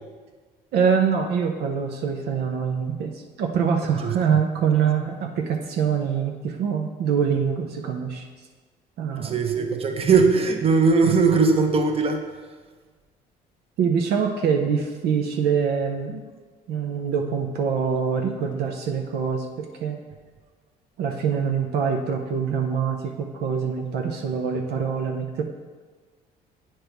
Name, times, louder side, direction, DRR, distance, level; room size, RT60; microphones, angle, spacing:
voice 1, 0.7-8.2 9.0-9.3 13.8-16.2 16.7-20.0 21.0-25.4, right 6 dB, 70° right, 2 dB, 0.6 m, -24 dB
voice 2, 3.8-4.1 9.2-12.2, right 4 dB, 35° right, 4 dB, 0.9 m, -20 dB
9.0 x 4.4 x 3.4 m, 1.4 s
supercardioid pair, 85°, 17 cm